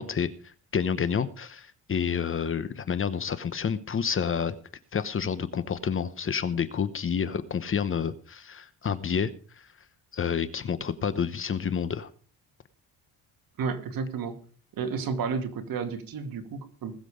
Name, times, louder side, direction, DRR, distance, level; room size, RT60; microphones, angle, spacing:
voice 1, 0.0-4.5 4.9-9.3 9.6-9.7 10.1-12.1, left 7 dB, 35° left, 14 dB, 0.9 m, -29 dB
voice 2, 13.6-14.4 14.8-16.9, right 5 dB, 60° right, 6 dB, 2.3 m, -31 dB
19.5 x 7.5 x 4.9 m, 0.43 s
cardioid pair, 120°, 39 cm